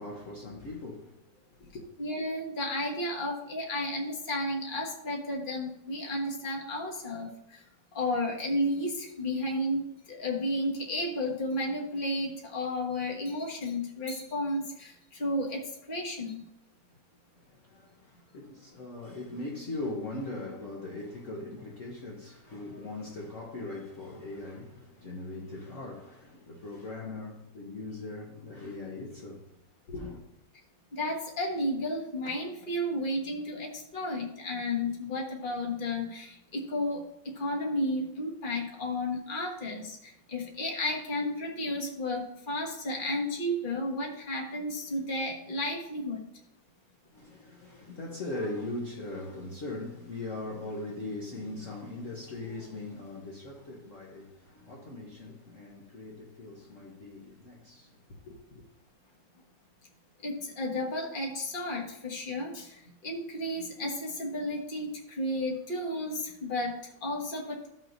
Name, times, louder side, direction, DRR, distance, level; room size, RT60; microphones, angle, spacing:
voice 1, 0.0-1.9 17.4-29.5 29.9-30.2 47.1-58.0 58.2-58.6, left 2 dB, 50° left, 1.4 m, -40 dB
voice 2, 2.0-7.6 7.9-15.6 15.9-16.5 30.9-46.2 60.2-67.7, left 1 dB, 30° left, 1.5 m, -33 dB
14.5 x 6.0 x 2.6 m
omnidirectional pair, 2.0 m